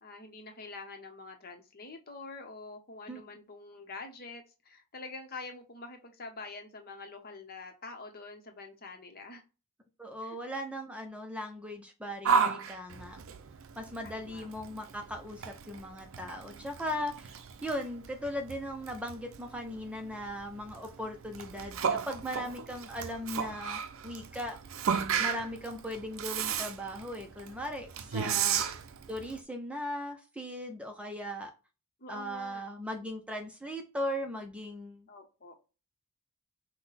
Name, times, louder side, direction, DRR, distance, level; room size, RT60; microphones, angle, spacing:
voice 1, 0.0-9.4 10.2-10.4 14.0-14.8 28.1-28.7 32.0-32.6 35.1-35.5, left 3 dB, 45° left, 5 dB, 0.9 m, -46 dB
voice 2, 10.0-13.2 13.8-24.6 25.2-28.6 29.1-31.5 32.1-35.1, equal, 5° right, 3 dB, 0.5 m, -38 dB
Yell, 12.2-29.4, right 7 dB, 65° right, 0.5 m, -35 dB
5.9 x 2.2 x 4.0 m, 0.31 s
head